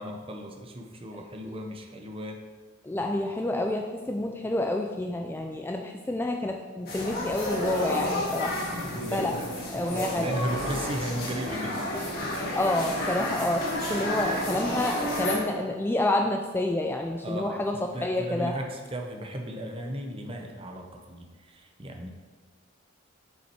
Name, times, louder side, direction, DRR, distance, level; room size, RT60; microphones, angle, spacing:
voice 1, 0.0-2.4 8.8-11.9 17.2-22.1, right 1 dB, 25° right, 3 dB, 0.8 m, -36 dB
voice 2, 2.8-9.3 9.7-10.4 12.5-18.5, left 1 dB, 10° left, 3 dB, 0.3 m, -29 dB
sound 1, 6.9-15.4, left 1 dB, 50° left, 2.1 m, -31 dB
7.2 x 5.6 x 4.5 m, 1.4 s
head